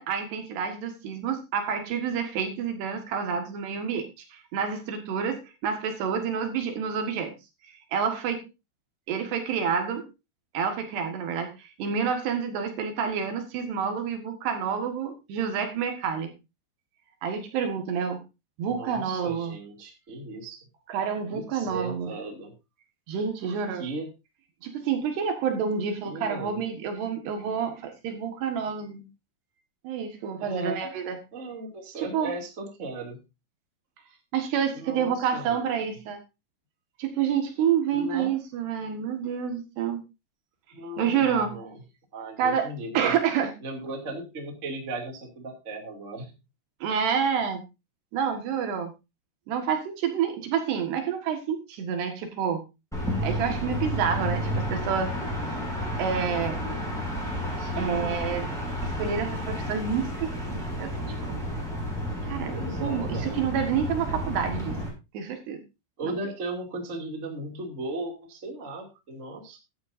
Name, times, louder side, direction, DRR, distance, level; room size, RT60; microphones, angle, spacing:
voice 1, 0.0-4.1 4.5-7.3 7.9-8.5 9.1-10.1 10.5-16.3 17.2-18.2 18.6-19.6 20.9-22.1 23.1-23.8 24.6-29.0 29.8-31.2 32.0-32.3 34.3-36.2 37.0-40.0 41.0-41.5 42.4-43.5 46.8-47.6 48.1-48.9 49.5-52.6 53.2-55.2 56.0-56.6 57.8-58.5 59.0-60.9 61.2-61.4 62.2-62.5 62.8-64.8 65.1-65.6 66.0-66.2, right 7 dB, 70° right, 5 dB, 3.6 m, -28 dB
voice 2, 18.7-20.6 21.3-22.5 23.4-24.1 26.0-26.6 30.4-30.8 31.3-33.2 34.7-35.9 37.9-38.4 40.7-41.8 42.1-43.2 43.6-46.3 57.6-58.1 62.5-63.5 66.0-69.6, right 2 dB, 25° right, 2 dB, 1.9 m, -36 dB
sound 1, 52.9-64.9, equal, ahead, 6.1 m, -31 dB
14.0 x 11.5 x 2.6 m, 0.26 s
omnidirectional pair, 5.3 m